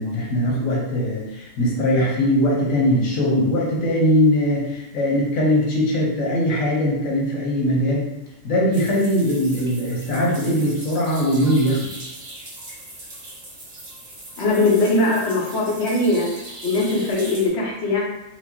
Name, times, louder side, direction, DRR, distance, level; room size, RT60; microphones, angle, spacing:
voice 1, 0.0-8.1 8.4-11.9, equal, 90° left, -3 dB, 1.2 m, -20 dB
sound 1, 8.7-17.5, right 1 dB, 35° right, 0.7 m, -39 dB
voice 2, 14.4-16.3 16.6-18.0, left 2 dB, 65° left, -3 dB, 1.1 m, -20 dB
4.5 x 2.0 x 2.9 m, 0.92 s
omnidirectional pair, 1.3 m